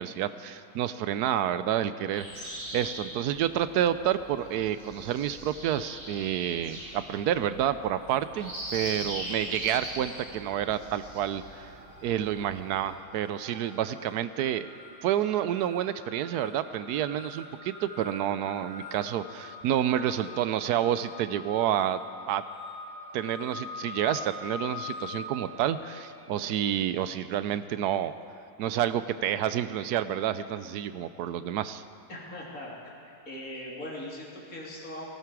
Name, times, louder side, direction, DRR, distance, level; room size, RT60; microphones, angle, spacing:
voice 1, 0.0-11.7 12.0-14.7 15.0-22.0 22.3-22.4 23.1-28.1 28.6-31.8, right 10 dB, 80° right, 13 dB, 1.1 m, -29 dB
sound 1, 2.1-12.9, equal, 50° right, 4.3 m, -41 dB
sound 2, 9.2-9.9 10.1-26.8, left 4 dB, 80° left, 3.9 m, -44 dB
voice 2, 32.1-32.7 33.1-35.2, left 1 dB, 60° left, -4 dB, 3.2 m, -40 dB
18.0 x 15.5 x 4.7 m, 2.4 s
omnidirectional pair, 1.7 m